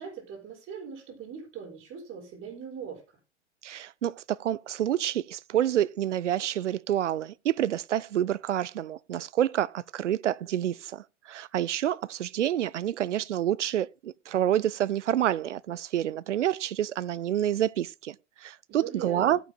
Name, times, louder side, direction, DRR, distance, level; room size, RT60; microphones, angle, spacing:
voice 1, 0.0-3.0 18.7-19.4, right 7 dB, 35° right, 5.9 m, -40 dB
voice 2, 3.6-18.2 18.4-19.4, right 11 dB, 80° right, 0.5 m, -28 dB
17.5 x 9.3 x 2.2 m
figure-of-eight pair, 100°, 36 cm